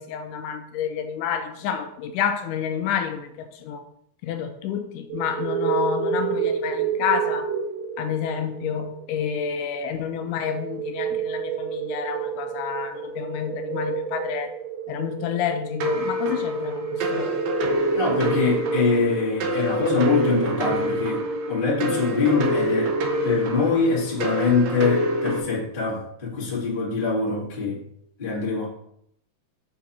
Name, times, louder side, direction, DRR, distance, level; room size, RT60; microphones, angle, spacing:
voice 1, 0.0-3.8 4.2-7.5 8.0-14.5 14.9-17.5, left 7 dB, 80° left, 2.0 m, -29 dB
sound 1, 5.1-19.3, right 6 dB, 85° right, 2.4 m, -30 dB
sound 2, 15.8-25.4, right 1 dB, 70° right, 1.7 m, -26 dB
voice 2, 17.9-23.0 23.2-27.8 28.2-28.7, left 4 dB, 20° left, 1.6 m, -24 dB
6.9 x 3.8 x 4.2 m
omnidirectional pair, 3.7 m